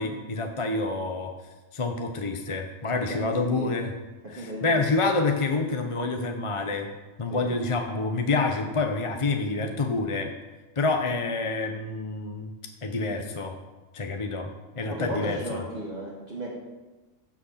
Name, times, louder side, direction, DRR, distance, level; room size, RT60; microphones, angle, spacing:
voice 1, 0.0-1.3 1.7-3.9 4.3-6.9 7.2-10.3 10.8-12.5 12.8-13.5 13.9-14.5 14.8-15.6, left 3 dB, 30° left, 4 dB, 0.8 m, -27 dB
voice 2, 3.0-3.8 4.2-5.1 5.7-5.8 7.3-7.5 14.9-16.5, right 1 dB, 40° right, -6 dB, 2.2 m, -35 dB
15.0 x 6.2 x 5.8 m, 1.2 s
omnidirectional pair, 1.3 m